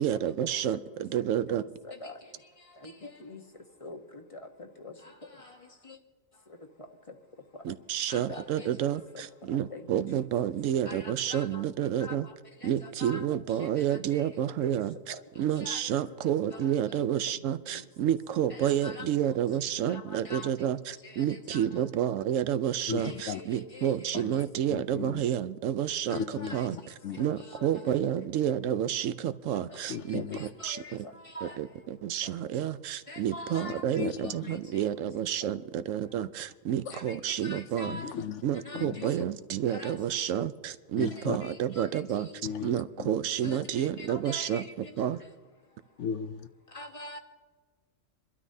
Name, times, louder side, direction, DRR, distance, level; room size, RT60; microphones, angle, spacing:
voice 1, 0.0-1.6 7.6-12.3 12.6-26.8 27.2-31.0 31.4-38.0 38.4-42.3 42.6-45.2, right 10 dB, 80° right, 1.0 m, -30 dB
voice 2, 1.5-2.1 2.8-3.4 3.8-4.0 4.3-4.4 4.8-4.9 5.9-6.0 8.1-9.0 9.7-9.8 10.9-11.6 12.0-12.1 12.6-13.2 13.8-14.3 14.6-14.8 15.6-15.8 16.5-16.6 18.5-19.4 19.9-20.5 21.1-21.6 23.0-24.2 26.1-26.7 27.2-27.6 30.3-30.9 31.3-31.6 32.2-32.3 33.1-34.6 36.9-37.2 37.4-38.1 38.7-38.9 39.7-40.3 41.2-41.9 43.4-44.9 46.7-47.2, left 2 dB, 25° left, 1.1 m, -44 dB
voice 3, 22.9-23.4 24.1-24.3 24.7-25.2 26.1-27.2 29.9-30.4 34.0-34.6 36.9-37.0 37.8-38.4 38.7-39.1 41.0-41.4 42.4-43.1 43.4-43.6 46.0-46.5, left 7 dB, 70° left, 0.9 m, -36 dB
27.5 x 12.5 x 2.7 m
omnidirectional pair, 1.3 m